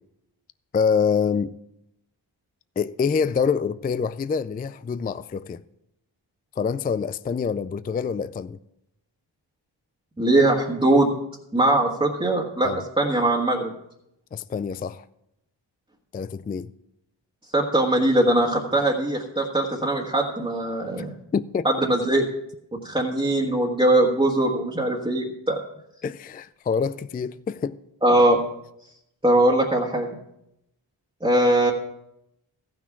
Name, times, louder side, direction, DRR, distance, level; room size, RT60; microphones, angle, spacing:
voice 1, 0.7-1.5 2.8-5.6 6.6-8.6 12.6-12.8 14.3-15.0 16.1-16.7 21.0-21.1 21.3-21.7 26.0-27.8, left 6 dB, 20° left, 0.3 m, -26 dB
voice 2, 10.2-11.2 11.5-13.7 17.5-21.1 21.6-22.2 22.8-25.6 28.0-28.4 29.2-30.2 31.2-31.7, right 1 dB, 10° right, 1.5 m, -21 dB
14.0 x 6.1 x 5.8 m
cardioid pair, 50°, 47 cm